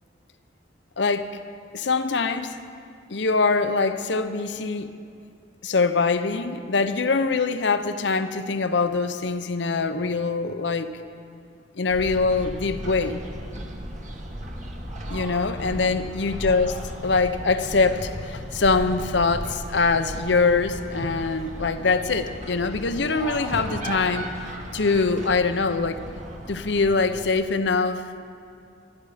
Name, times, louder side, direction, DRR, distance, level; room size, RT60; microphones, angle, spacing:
voice 1, 1.0-1.3 1.7-2.5 3.1-4.9 5.6-11.0 11.7-13.2 15.1-24.3 24.7-26.0 26.5-28.0, left 4 dB, 70° left, 10 dB, 0.8 m, -23 dB
sound 1, 11.9-27.3, right 1 dB, 40° right, 1.5 m, -36 dB
24.0 x 11.0 x 5.0 m, 2.4 s
head